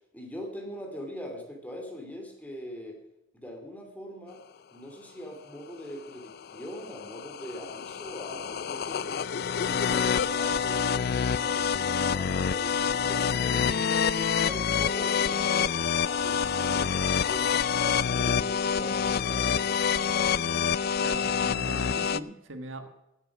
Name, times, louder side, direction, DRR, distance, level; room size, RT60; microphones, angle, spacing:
voice 1, 0.1-3.0 3.3-4.4 4.7-9.1 9.6-17.0 17.3-19.8, equal, 10° left, 2 dB, 2.7 m, -42 dB
sound 1, 6.1-22.2, left 7 dB, 55° left, 0.4 m, -27 dB
voice 2, 21.0-22.9, right 1 dB, 80° right, 7 dB, 1.6 m, -40 dB
16.0 x 8.2 x 6.1 m, 0.88 s
head